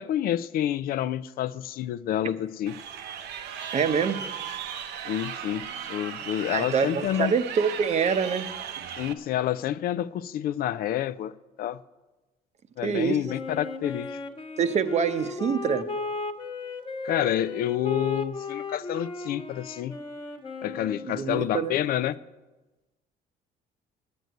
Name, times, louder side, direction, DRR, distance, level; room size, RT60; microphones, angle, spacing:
voice 1, 0.0-2.7 5.0-7.3 9.0-11.8 12.8-14.2 17.0-20.0 20.6-22.1, left 11 dB, 60° left, 0.4 m, -28 dB
Crowd, 2.7-9.1, right 8 dB, 80° right, 0.8 m, -37 dB
voice 2, 3.7-4.2 6.5-8.5 12.8-13.2 14.6-15.9 21.1-21.7, right 6 dB, 40° right, 0.8 m, -25 dB
Wind instrument woodwind instrument, 13.3-21.4, left 3 dB, 30° left, 1.3 m, -36 dB
9.5 x 7.9 x 9.2 m
cardioid pair, 110°, 17 cm